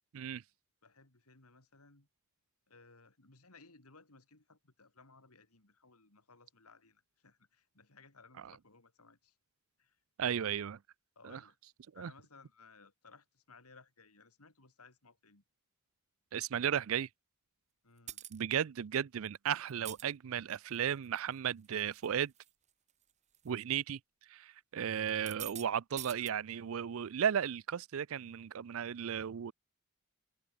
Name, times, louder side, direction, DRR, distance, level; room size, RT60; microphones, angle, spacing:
voice 1, 0.8-2.1 2.7-9.4 9.8-10.0 10.4-10.5 11.2-11.6 11.9-15.4 17.8-18.3 25.6-25.7 26.1-26.3, left 4 dB, 85° left, 3.7 m, -61 dB
voice 2, 10.2-10.8 11.2-11.4 12.0-12.1 16.3-17.1 18.3-22.3 23.4-24.0 24.3-29.5, right 8 dB, 65° right, 0.4 m, -35 dB
sound 1, 18.1-18.4 19.7-20.0 20.7-21.2 21.6-22.1 22.4-22.5 23.3-23.5 25.1-25.7 26.0-26.3, right 11 dB, 30° right, 1.5 m, -45 dB
head